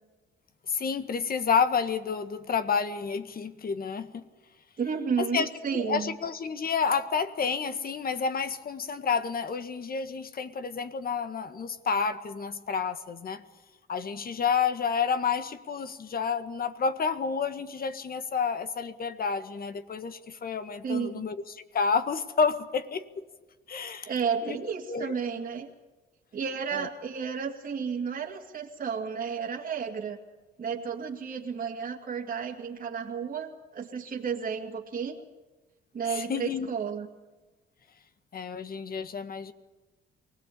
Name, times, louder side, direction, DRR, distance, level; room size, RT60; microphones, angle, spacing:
voice 1, 0.7-4.2 5.2-13.4 13.9-21.4 21.7-23.0 23.7-24.1 24.4-24.6 24.9-25.2 26.7-26.9 36.1-36.7 38.3-39.5, left 6 dB, 50° left, 10 dB, 1.8 m, -30 dB
voice 2, 4.8-6.1 20.8-21.2 24.1-25.7 26.3-30.2 30.6-35.2 35.9-37.1, right 6 dB, 45° right, -1 dB, 2.3 m, -32 dB
24.0 x 18.0 x 8.5 m, 1.2 s
cardioid pair, 90°, 20 cm